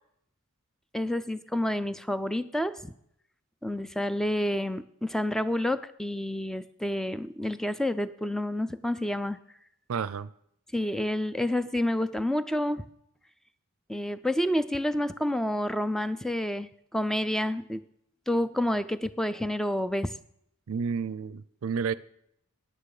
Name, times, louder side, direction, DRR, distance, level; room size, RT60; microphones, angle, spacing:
voice 1, 0.9-2.9 3.6-9.4 10.7-12.8 13.9-17.8 18.3-20.1, left 1 dB, ahead, 13 dB, 0.3 m, -29 dB
voice 2, 9.9-10.3 20.7-21.9, right 6 dB, 80° right, 18 dB, 0.4 m, -31 dB
9.6 x 9.1 x 4.8 m, 0.72 s
head